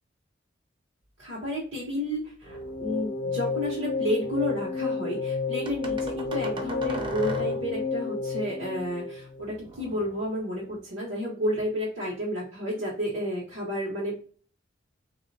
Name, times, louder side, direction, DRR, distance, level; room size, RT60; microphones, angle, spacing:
voice 1, 1.2-14.2, equal, 80° right, -7 dB, 1.3 m, -31 dB
sound 1, 2.4-3.0 3.6-4.5 5.7-7.9 9.4-10.8, right 1 dB, 25° right, 0.6 m, -40 dB
sound 2, 2.5-9.7, left 4 dB, 45° left, 0.6 m, -31 dB
3.3 x 2.7 x 4.1 m, 0.42 s
head